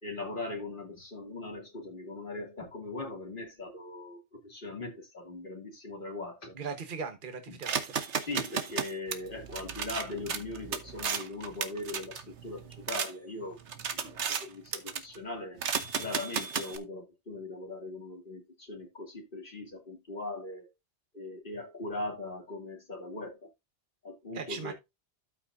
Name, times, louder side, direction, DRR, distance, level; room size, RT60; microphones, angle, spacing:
voice 1, 0.0-6.5 8.2-20.7 21.1-23.5 24.0-24.7, left 2 dB, 45° left, 2.8 m, -40 dB
voice 2, 6.5-8.0 24.3-24.7, right 5 dB, 45° right, 1.3 m, -39 dB
sound 1, 7.6-13.1 13.5-14.5 14.7-15.2 15.6-16.8, right 7 dB, 75° right, 1.3 m, -34 dB
13.0 x 5.9 x 2.6 m
omnidirectional pair, 1.2 m